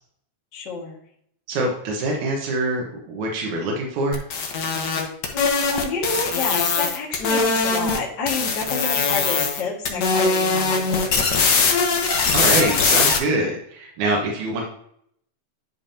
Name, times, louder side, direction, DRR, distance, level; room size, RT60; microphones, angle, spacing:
voice 1, 0.5-1.0 5.3-11.2, left 4 dB, 40° left, -2 dB, 2.1 m, -29 dB
voice 2, 1.5-4.2 12.3-14.6, right 2 dB, 75° right, -1 dB, 2.6 m, -24 dB
sound 1, 4.1-8.0 8.3-9.6 9.9-13.2, left 4 dB, 90° left, 0.9 m, -21 dB
11.0 x 5.3 x 2.8 m, 0.69 s
omnidirectional pair, 3.4 m